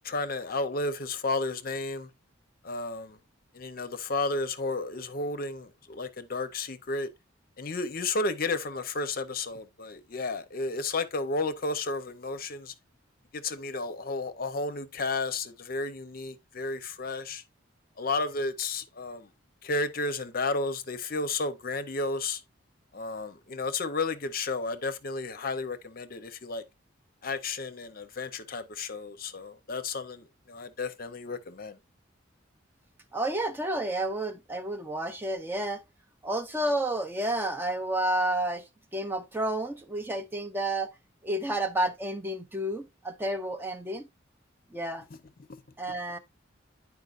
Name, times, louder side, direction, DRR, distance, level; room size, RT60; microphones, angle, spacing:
voice 1, 0.0-2.1 2.6-3.2 3.5-7.1 7.6-12.7 13.3-17.4 18.0-19.3 19.6-22.4 22.9-26.6 27.2-31.8 45.1-45.2 45.5-45.6, left 3 dB, 50° left, 0.7 m, -32 dB
voice 2, 33.1-35.8 36.2-38.6 38.9-40.9 41.2-44.1 44.7-45.0 45.8-46.2, right 1 dB, 10° right, 0.5 m, -30 dB
9.6 x 4.7 x 2.5 m
head